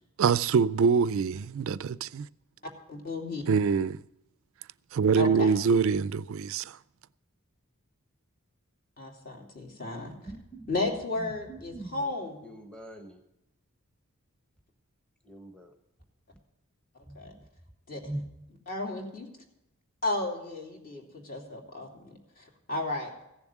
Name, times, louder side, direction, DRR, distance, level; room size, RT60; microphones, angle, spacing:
voice 1, 0.2-2.3 3.5-4.0 4.9-6.8, right 5 dB, 65° right, 0.4 m, -24 dB
voice 2, 2.9-3.5 5.1-5.6 9.0-10.1 10.7-12.5 17.1-17.3 17.9-18.1 18.7-19.3 20.0-23.1, left 2 dB, 40° left, 2.7 m, -34 dB
voice 3, 10.3-12.0 12.4-13.2 15.2-15.7 17.0-17.4 18.0-18.2, right 1 dB, 5° left, 1.1 m, -42 dB
16.0 x 7.1 x 7.2 m
head